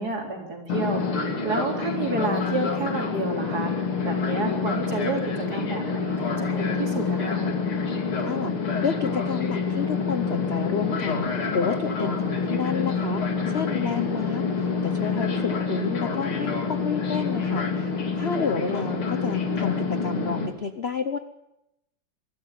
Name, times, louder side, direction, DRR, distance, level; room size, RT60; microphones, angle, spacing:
voice 1, 0.0-7.5 14.0-14.2, right 2 dB, 45° right, 2 dB, 4.4 m, -30 dB
Fixed-wing aircraft airplane, 0.7-20.5, left 5 dB, 85° left, 3.4 m, -27 dB
voice 2, 8.8-14.4 14.8-21.2, left 6 dB, 55° left, 11 dB, 0.7 m, -30 dB
23.5 x 14.0 x 9.3 m, 0.88 s
omnidirectional pair, 2.3 m